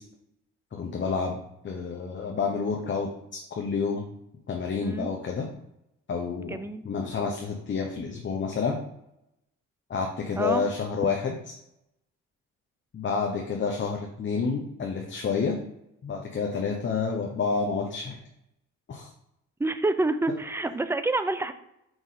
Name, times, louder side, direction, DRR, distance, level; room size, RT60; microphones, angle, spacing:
voice 1, 0.7-1.4 1.6-4.1 4.5-5.5 6.1-6.6 6.8-8.8 9.9-11.3 12.9-15.6 16.0-18.2 18.9-19.1, left 5 dB, 40° left, 1 dB, 0.9 m, -29 dB
voice 2, 6.5-6.9 10.4-10.6 19.6-21.5, right 2 dB, 10° right, 10 dB, 0.5 m, -27 dB
5.1 x 4.8 x 4.1 m, 0.81 s
cardioid pair, 90°, 30 cm